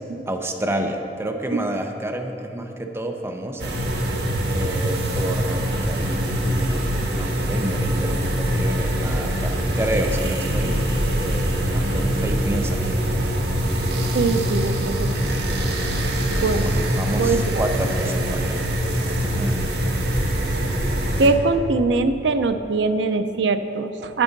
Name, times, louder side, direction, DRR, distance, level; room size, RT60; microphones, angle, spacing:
voice 1, 0.3-3.8 4.4-10.7 11.2-13.0 16.4-18.5 19.2-19.6, right 1 dB, 15° right, 3 dB, 0.5 m, -29 dB
sound 1, 3.6-21.3, equal, 60° right, 1.1 m, -23 dB
voice 2, 14.1-15.1 16.4-16.7 17.1-17.6 21.2-24.2, right 3 dB, 80° right, 9 dB, 0.5 m, -22 dB
9.9 x 8.7 x 4.0 m, 2.9 s
head